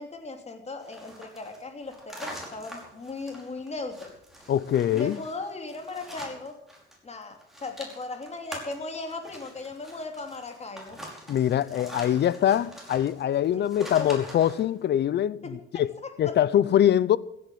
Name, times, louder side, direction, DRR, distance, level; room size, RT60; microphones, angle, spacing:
voice 1, 0.0-4.1 4.9-6.5 7.0-11.0 13.5-14.1 15.4-16.4, left 3 dB, 35° left, 3.0 m, -38 dB
sound 1, 0.8-7.0 7.2-14.7, right 1 dB, ahead, 5.2 m, -44 dB
voice 2, 4.5-5.2 11.3-15.9 16.2-17.2, left 10 dB, 60° left, 0.7 m, -23 dB
16.0 x 9.7 x 7.9 m
cardioid pair, 90°, 20 cm